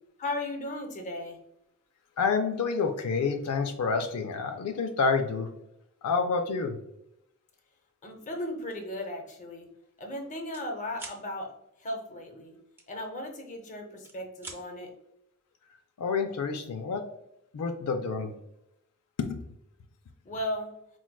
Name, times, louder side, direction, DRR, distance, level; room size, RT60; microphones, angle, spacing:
voice 1, 0.2-1.4 8.0-9.7 10.0-11.5 11.8-12.6 12.9-14.9 20.2-20.7, left 1 dB, 35° left, 3 dB, 0.6 m, -36 dB
voice 2, 2.2-5.5 6.0-6.8 16.0-17.1 17.5-18.3 19.2-19.4, left 5 dB, 80° left, 6 dB, 0.4 m, -28 dB
sound 1, 8.6-8.9 9.3-9.5 9.8-10.7 10.9-11.2 12.8-13.6 13.9-14.6, right 2 dB, 10° right, 0.4 m, -45 dB
4.5 x 2.2 x 2.2 m, 0.80 s
head